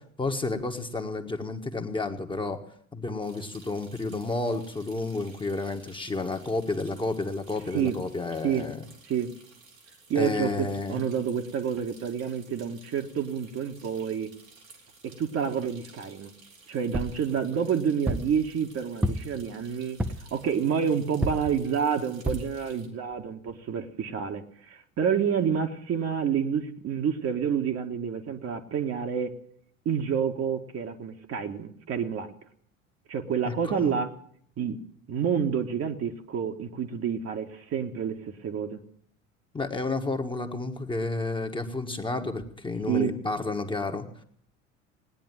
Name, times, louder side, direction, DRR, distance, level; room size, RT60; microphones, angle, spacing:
voice 1, 0.2-2.6 2.9-8.8 10.1-11.0 33.4-33.9 39.5-44.0, left 3 dB, 10° left, 4 dB, 1.7 m, -31 dB
sound 1, 3.2-22.9, right 3 dB, 85° right, 3.1 m, -55 dB
voice 2, 10.1-14.3 15.0-16.3 16.7-20.0 20.3-29.4 29.9-32.3 33.1-34.1 34.6-34.8 35.1-38.8 42.9-43.2, right 7 dB, 35° right, 5 dB, 1.7 m, -28 dB
sound 2, 16.9-17.2 18.1-18.4 19.0-19.4 20.0-20.3 21.2-21.6 22.3-22.5 23.1-23.2 23.5-23.6, equal, 5° right, 1.0 m, -29 dB
19.0 x 10.0 x 7.6 m, 0.62 s
figure-of-eight pair, 65°, 39 cm